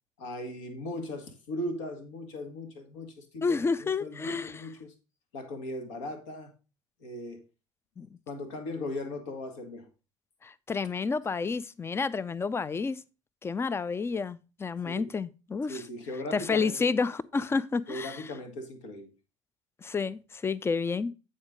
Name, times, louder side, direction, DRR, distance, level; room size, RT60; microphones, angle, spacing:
voice 1, 0.2-4.9 5.3-6.5 7.0-7.4 8.3-9.9 14.8-15.1 15.7-16.9 17.9-19.1, left 1 dB, 65° left, 1.6 m, -38 dB
voice 2, 3.4-4.6 8.0-8.1 10.4-13.0 13.4-15.8 16.3-18.2 19.8-21.1, left 4 dB, 15° left, 0.4 m, -30 dB
8.7 x 4.3 x 4.8 m
figure-of-eight pair, 65°, 16 cm